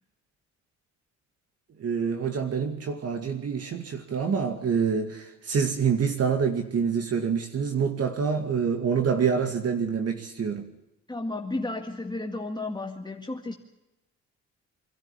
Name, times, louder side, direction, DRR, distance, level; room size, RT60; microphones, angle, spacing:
voice 1, 1.8-10.7, right 6 dB, 55° right, 6 dB, 2.2 m, -26 dB
voice 2, 11.1-13.5, left 2 dB, 15° left, 2 dB, 2.0 m, -33 dB
25.5 x 13.0 x 9.9 m, 0.94 s
cardioid pair, 90°, 30 cm